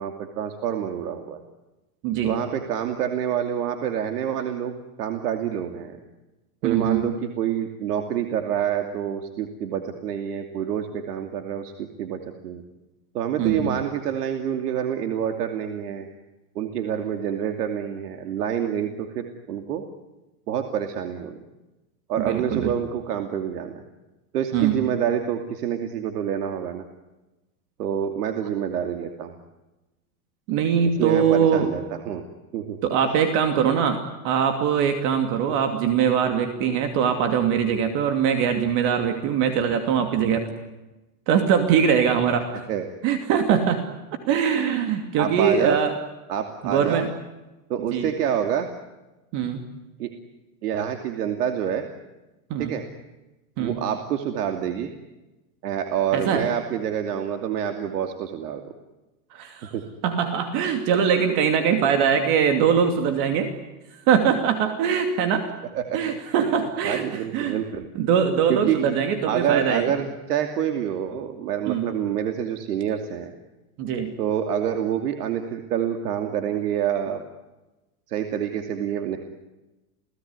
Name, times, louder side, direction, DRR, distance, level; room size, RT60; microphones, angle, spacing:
voice 1, 0.0-1.4 2.2-6.0 6.6-12.6 13.1-16.1 16.5-19.8 20.5-21.4 22.1-23.8 24.3-26.8 27.8-29.3 31.0-32.2 32.5-32.8 42.7-42.8 45.2-45.8 46.3-47.1 47.7-48.7 50.0-50.1 50.6-51.8 52.6-52.9 53.6-54.9 55.6-58.7 59.7-59.9 65.7-66.2 66.8-67.9 68.5-68.8 69.3-73.3 74.2-77.2 78.1-79.2, right 9 dB, 90° right, 6 dB, 2.8 m, -27 dB
voice 2, 2.0-2.4 6.6-7.1 13.4-13.8 22.2-22.7 24.5-24.8 30.5-31.7 32.8-40.4 41.3-42.6 43.0-43.8 44.3-45.9 46.6-47.1 47.9-48.1 49.3-49.6 52.5-52.7 53.6-53.8 56.1-56.4 59.3-59.7 60.0-63.5 63.9-65.5 65.9-67.6 67.9-69.9 71.7-71.9 73.8-74.1, right 7 dB, 40° right, 6 dB, 2.7 m, -22 dB
29.5 x 18.5 x 9.6 m, 1.1 s
supercardioid pair, 165°, 45 cm